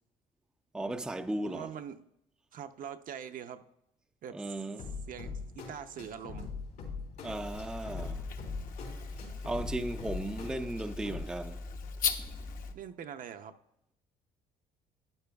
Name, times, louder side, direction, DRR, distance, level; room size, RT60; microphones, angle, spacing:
voice 1, 0.7-1.7 4.3-4.9 7.2-8.3 9.5-11.7 12.2-12.3, right 1 dB, 5° right, 0.4 m, -36 dB
voice 2, 1.4-2.1 2.5-3.6 4.2-4.5 5.1-6.5 12.7-13.5, right 8 dB, 55° right, 0.6 m, -43 dB
sound 1, 4.8-11.2, left 4 dB, 90° left, 3.4 m, -42 dB
sound 2, 7.3-12.7, left 5 dB, 55° left, 0.9 m, -38 dB
12.0 x 9.6 x 2.3 m
cardioid pair, 110°, 17 cm